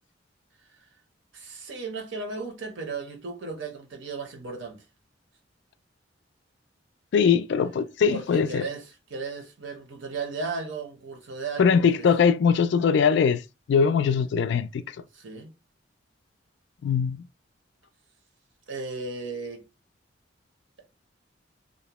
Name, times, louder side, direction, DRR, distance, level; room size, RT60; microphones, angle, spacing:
voice 1, 1.3-4.8 8.1-12.1 15.1-15.5 18.7-19.6, right 4 dB, 75° right, 0.8 m, -35 dB
voice 2, 7.1-8.6 11.6-13.4 13.7-14.8 16.8-17.2, left 6 dB, 65° left, 0.3 m, -21 dB
2.6 x 2.1 x 2.9 m
head